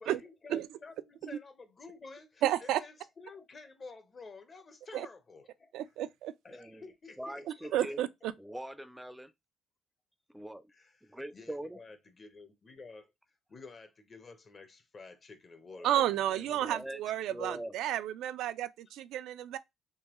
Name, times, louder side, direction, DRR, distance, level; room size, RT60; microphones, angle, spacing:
voice 1, 0.0-5.7 6.4-8.0 10.7-13.1 13.5-16.6, left 4 dB, 40° left, 0.9 m, -51 dB
voice 2, 2.4-2.8 4.9-5.1 5.7-6.3 7.7-8.3 15.8-19.6, right 12 dB, 85° right, 0.3 m, -31 dB
voice 3, 6.5-6.8 7.2-8.0 8.4-9.3 10.3-10.7 11.0-11.8 15.7-16.0 16.5-17.0 17.3-17.7, right 1 dB, 5° right, 0.4 m, -42 dB
3.6 x 3.0 x 3.0 m
cardioid pair, 90°, 0 cm